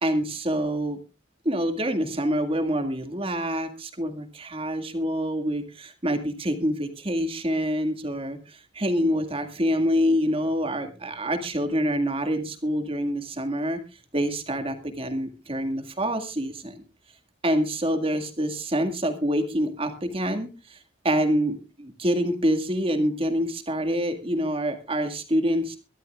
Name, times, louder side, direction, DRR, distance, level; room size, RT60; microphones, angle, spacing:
voice 1, 0.0-1.0 1.5-13.8 14.1-16.8 17.4-20.8 21.0-25.8, equal, 30° right, 7 dB, 2.0 m, -26 dB
23.0 x 12.5 x 2.4 m, 0.31 s
head